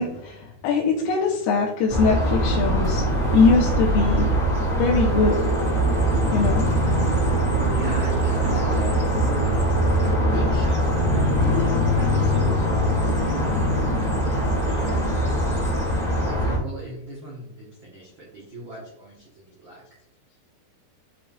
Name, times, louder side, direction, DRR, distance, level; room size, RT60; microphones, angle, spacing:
voice 1, 0.0-3.1 3.3-4.3 4.8-5.4 6.3-6.7 8.4-8.9 9.3-9.5 11.4-11.5, left 4 dB, 85° left, -3 dB, 2.7 m, -22 dB
sound 1, 1.9-16.6, right 1 dB, 10° left, 1.4 m, -22 dB
voice 2, 7.7-9.6 10.0-13.5 14.6-15.8 16.2-19.1 19.5-19.8, equal, 80° right, -4 dB, 1.0 m, -38 dB
8.7 x 4.5 x 2.4 m, 0.82 s
omnidirectional pair, 4.5 m